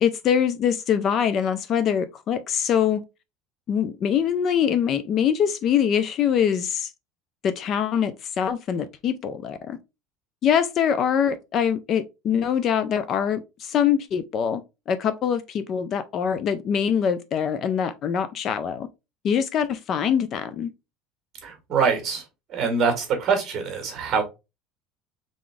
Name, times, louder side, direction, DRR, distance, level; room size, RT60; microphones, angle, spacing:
voice 1, 0.0-3.0 3.7-6.9 7.4-9.8 10.4-14.6 14.9-18.9 19.2-20.7, left 8 dB, 35° left, 0.4 m, -23 dB
voice 2, 21.4-22.2 22.5-24.2, right 5 dB, 35° right, 1.8 m, -24 dB
3.8 x 3.6 x 3.4 m
cardioid pair, 160°, 0 cm